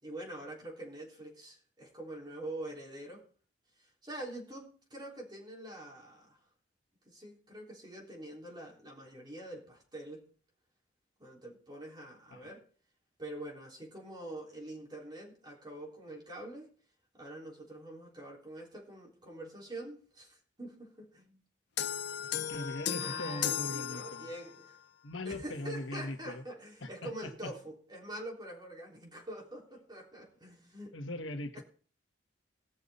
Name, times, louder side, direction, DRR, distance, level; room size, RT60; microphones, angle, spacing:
voice 1, 0.0-3.2 3.8-6.4 7.1-10.2 11.2-12.6 13.2-16.7 17.1-21.4 23.0-24.8 25.2-30.9 31.5-31.6, right 1 dB, 20° right, -1 dB, 3.5 m, -45 dB
sound 1, 21.8-24.6, left 9 dB, 60° left, 0.7 m, -35 dB
voice 2, 22.5-24.3 25.0-26.4 26.8-27.5 30.9-31.6, left 2 dB, 85° left, 6 dB, 1.5 m, -40 dB
18.5 x 6.7 x 4.1 m, 0.41 s
head